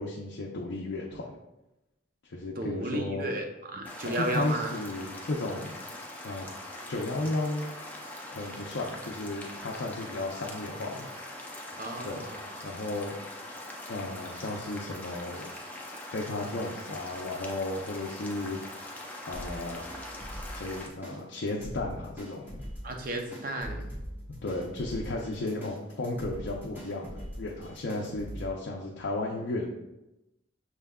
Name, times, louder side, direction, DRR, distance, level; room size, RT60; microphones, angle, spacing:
voice 1, 0.0-1.3 2.2-3.3 4.2-5.7 6.2-6.5 6.9-7.7 8.3-11.1 12.0-12.2 12.6-13.1 13.9-15.4 16.1-18.6 19.3-19.8 20.5-22.6 24.3-29.7, left 2 dB, 65° left, -1 dB, 0.5 m, -34 dB
voice 2, 2.6-3.5 3.7-4.8 11.8-12.5 22.8-23.9, right 1 dB, 45° right, 3 dB, 0.6 m, -33 dB
sound 1, 3.8-20.9, left 1 dB, 10° left, 0.4 m, -42 dB
sound 2, 19.3-28.5, equal, 10° right, 0.8 m, -43 dB
6.2 x 3.5 x 2.2 m, 0.95 s
head